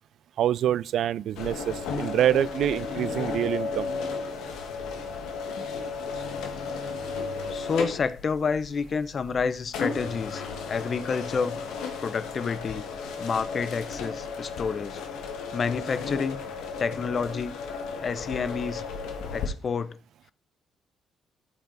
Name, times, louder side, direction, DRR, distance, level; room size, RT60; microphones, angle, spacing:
voice 1, 0.4-3.9, right 11 dB, 75° right, 0.3 m, -26 dB
sound 1, 1.4-19.5, left 5 dB, 90° left, 1.4 m, -34 dB
voice 2, 7.5-10.4 10.7-11.6 12.0-12.8 13.2-15.0 15.5-16.4 16.8-17.6 18.0-18.8 19.3-20.0, left 5 dB, 45° left, 0.6 m, -29 dB
14.0 x 4.7 x 3.9 m
cardioid pair, 90°, 0 cm